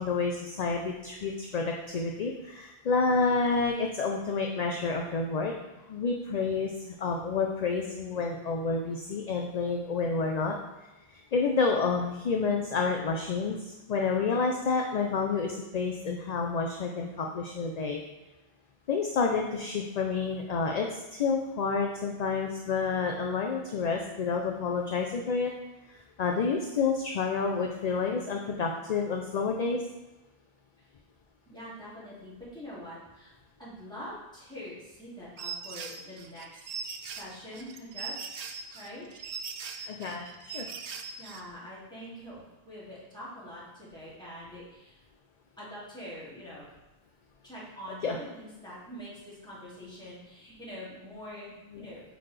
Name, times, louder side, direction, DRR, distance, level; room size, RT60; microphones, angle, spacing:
voice 1, 0.0-5.5 5.9-10.5 11.1-18.0 18.9-25.5 25.9-29.8 39.9-40.7 48.0-48.2 51.7-51.9, left 4 dB, 50° left, 2 dB, 0.6 m, -29 dB
voice 2, 31.5-38.3 38.7-39.1 39.7-40.0 40.8-45.0 45.6-46.7 47.4-52.0, equal, 5° left, -9 dB, 2.3 m, -45 dB
sound 1, 35.4-41.4, right 5 dB, 55° right, 0.5 m, -40 dB
8.8 x 4.0 x 3.2 m, 1.0 s
omnidirectional pair, 1.0 m